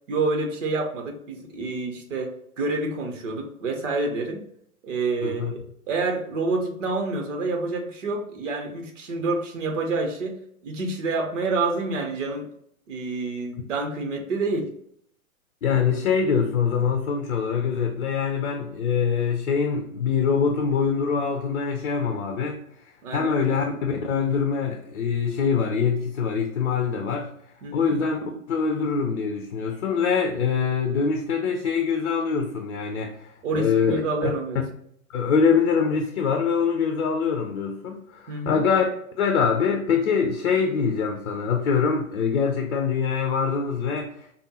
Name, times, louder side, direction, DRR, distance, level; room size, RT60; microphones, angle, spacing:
voice 1, 0.1-4.4 4.8-5.6 5.9-10.4 10.6-12.5 12.9-14.7 23.0-23.5 27.6-27.9 33.4-34.6 38.3-38.6, right 3 dB, 55° right, 3 dB, 0.9 m, -28 dB
voice 2, 5.2-5.5 15.6-22.6 23.1-27.3 27.7-28.2 28.5-34.3 35.1-38.8 39.2-44.1, left 6 dB, 55° left, 3 dB, 0.6 m, -24 dB
5.0 x 2.1 x 2.9 m, 0.69 s
figure-of-eight pair, 105°, 44 cm